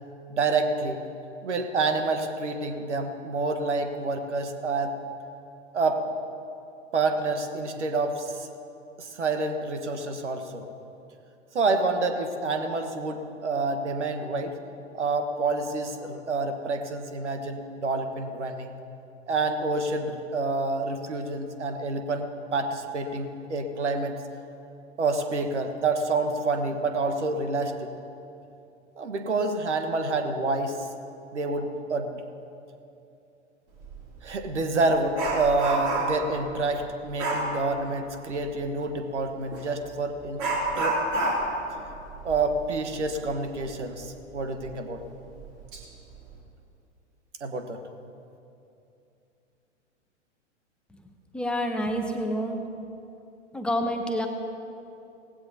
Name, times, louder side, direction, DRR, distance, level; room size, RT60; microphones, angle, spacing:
voice 1, 0.3-1.0 1.4-4.9 5.7-6.0 6.9-8.5 9.0-10.6 11.5-14.5 14.9-18.7 19.3-24.2 25.0-27.7 29.0-30.8 31.3-32.2 34.2-40.4 40.8-41.0 42.2-45.0 47.4-47.8, right 3 dB, 70° right, 6 dB, 1.4 m, -28 dB
Dog, 33.8-34.0 34.4-36.3 37.2-37.5 39.5-39.7 40.4-43.7 44.0-44.1 44.6-44.7 45.4-45.8 46.1-46.4, right 2 dB, 40° right, 3.0 m, -29 dB
voice 2, 51.3-52.6 53.5-54.3, equal, 5° left, 3 dB, 1.0 m, -28 dB
18.0 x 16.0 x 2.8 m, 2.7 s
figure-of-eight pair, 105°, 36 cm